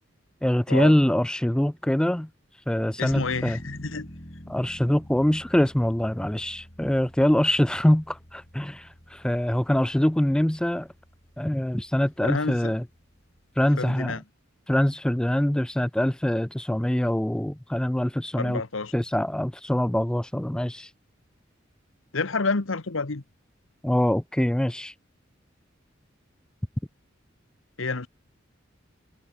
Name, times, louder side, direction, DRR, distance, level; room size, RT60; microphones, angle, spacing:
voice 1, 0.4-2.3 2.7-3.6 4.5-10.9 11.4-12.8 13.6-14.2 14.7-18.6 18.9-20.9 23.8-24.9, left 1 dB, 5° left, 0.3 m, -24 dB
voice 2, 3.0-4.1 12.3-12.7 13.8-14.2 18.4-18.9 22.1-23.2 27.8-28.1, left 3 dB, 80° left, 1.3 m, -29 dB
sound 1, 3.1-13.9, equal, 35° left, 5.3 m, -47 dB
head